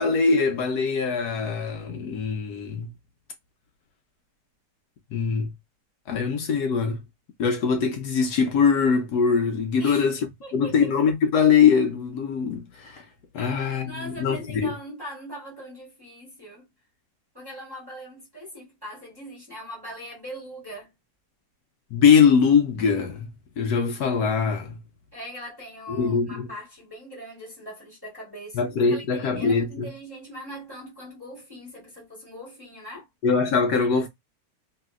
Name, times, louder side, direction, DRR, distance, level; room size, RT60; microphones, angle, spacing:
voice 1, 0.0-2.9 5.1-5.5 6.1-7.0 7.4-13.0 13.3-14.7 21.9-24.8 25.9-26.5 28.5-29.9 33.2-34.1, left 6 dB, 70° left, 1.1 m, -22 dB
voice 2, 10.4-10.9 13.4-16.7 17.3-20.9 25.1-33.1, equal, 15° right, 1.1 m, -41 dB
3.1 x 2.7 x 2.3 m
omnidirectional pair, 1.9 m